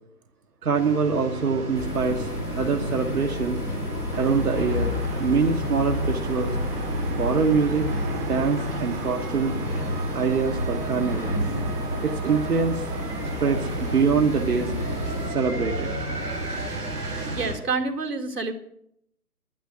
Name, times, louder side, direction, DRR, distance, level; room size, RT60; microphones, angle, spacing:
voice 1, 0.6-2.3 2.6-3.6 4.1-6.6 7.1-7.9 8.3-9.5 10.1-11.3 12.0-12.9 13.4-14.7 15.3-15.9, right 5 dB, 65° right, 1 dB, 1.4 m, -24 dB
sound 1, 0.7-17.5, right 1 dB, 5° right, 0.5 m, -33 dB
sound 2, 1.7-15.3, left 2 dB, 80° left, 3.9 m, -30 dB
sound 3, 4.1-14.1, right 7 dB, 35° right, 1.2 m, -39 dB
voice 2, 17.4-18.5, right 4 dB, 80° right, 3 dB, 2.1 m, -27 dB
11.5 x 10.0 x 7.5 m, 0.74 s
figure-of-eight pair, 135°, 47 cm